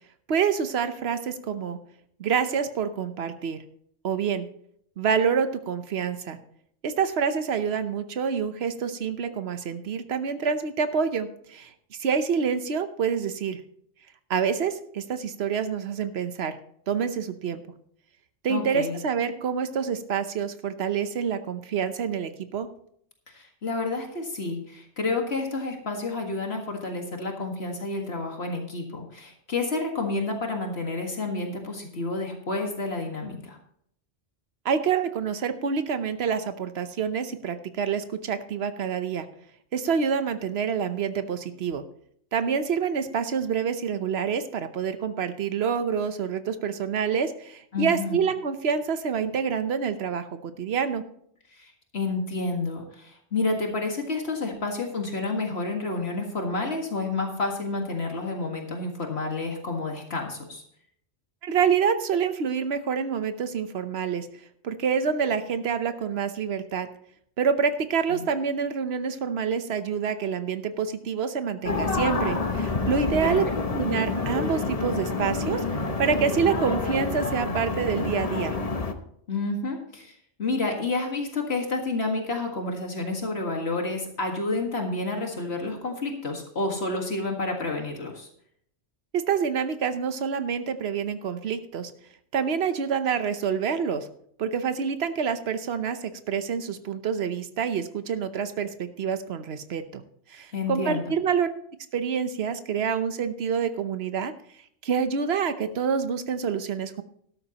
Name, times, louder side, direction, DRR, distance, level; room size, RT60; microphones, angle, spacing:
voice 1, 0.3-1.8 2.2-3.6 4.0-4.5 5.0-6.4 6.8-11.7 12.0-13.6 14.3-16.6 16.9-17.6 18.4-22.7 34.6-39.3 39.7-41.8 42.3-51.0 61.4-64.3 64.6-66.9 67.4-73.4 73.7-75.6 76.0-78.6 89.1-91.9 92.3-94.1 94.4-100.0 100.3-101.5 101.9-104.3 104.8-107.0, right 6 dB, 65° right, 10 dB, 1.1 m, -27 dB
voice 2, 18.5-19.0 23.3-33.6 47.7-48.2 51.5-60.6 68.1-68.2 73.2-73.3 79.3-80.1 80.4-88.3 100.5-101.1, left 3 dB, 65° left, 2 dB, 2.0 m, -30 dB
sound 1, 71.6-78.9, left 3 dB, 35° left, 1.0 m, -28 dB
13.0 x 12.5 x 3.0 m, 0.67 s
omnidirectional pair, 1.2 m